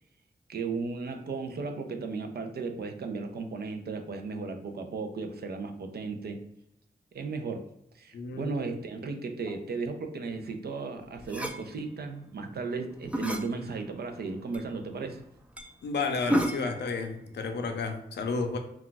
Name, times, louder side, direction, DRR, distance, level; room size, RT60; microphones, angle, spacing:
voice 1, 0.5-6.4 7.1-7.7 8.0-15.2, right 4 dB, 65° right, 6 dB, 0.5 m, -35 dB
voice 2, 8.1-8.7 15.8-18.6, left 4 dB, 80° left, 5 dB, 0.5 m, -32 dB
sound 1, 11.2-11.6 12.9-13.5 14.0-14.1 14.5-14.6 15.0-15.1 15.6-15.7 16.1-16.8, equal, 5° right, 0.4 m, -30 dB
2.3 x 2.3 x 3.8 m, 0.81 s
cardioid pair, 60°, 17 cm